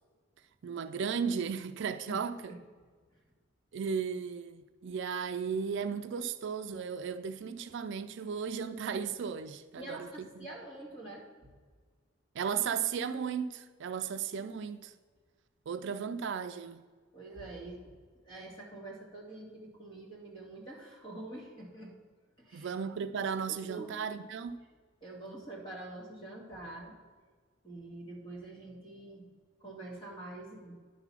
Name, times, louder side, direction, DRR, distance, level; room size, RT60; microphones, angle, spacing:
voice 1, 0.6-2.5 3.7-10.0 10.4-10.5 12.3-14.9 15.7-16.8 22.5-24.6, right 6 dB, 65° right, 0.4 m, -35 dB
voice 2, 9.8-11.5 17.1-17.9 18.2-21.9 22.4-22.7 23.5-23.9 25.0-27.0 27.6-29.3 29.6-30.8, right 2 dB, 25° left, 2.5 m, -45 dB
10.5 x 4.0 x 5.7 m
head